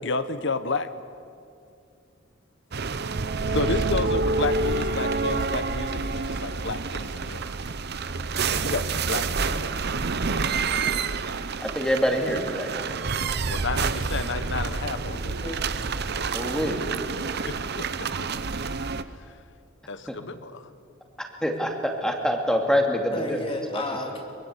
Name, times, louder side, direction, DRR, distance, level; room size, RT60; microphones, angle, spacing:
voice 1, 0.0-0.9 3.5-7.6 8.5-9.7 13.5-15.4 17.5-18.1 19.9-20.7, left 3 dB, 60° left, 12 dB, 1.1 m, -31 dB
sound 1, 2.7-19.0, right 4 dB, 55° right, 0.8 m, -28 dB
voice 2, 7.5-8.5 15.2-15.6 23.1-24.2, left 1 dB, 30° left, 2 dB, 3.1 m, -34 dB
voice 3, 11.6-12.7 16.3-16.9 20.1-20.2 21.4-23.4 23.7-23.8, equal, 5° left, 2 dB, 2.4 m, -25 dB
23.0 x 23.0 x 8.3 m, 2.4 s
head